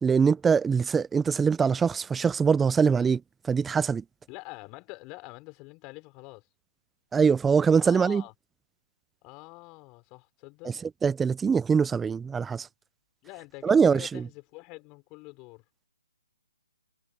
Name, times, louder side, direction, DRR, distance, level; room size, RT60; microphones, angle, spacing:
voice 1, 0.0-4.0 7.1-8.2 10.6-12.7 13.6-14.3, right 6 dB, 10° right, 0.6 m, -23 dB
voice 2, 4.3-6.5 7.8-8.3 9.2-10.8 13.2-15.6, left 26 dB, 25° left, 5.8 m, -45 dB
figure-of-eight pair, 135°, 0 cm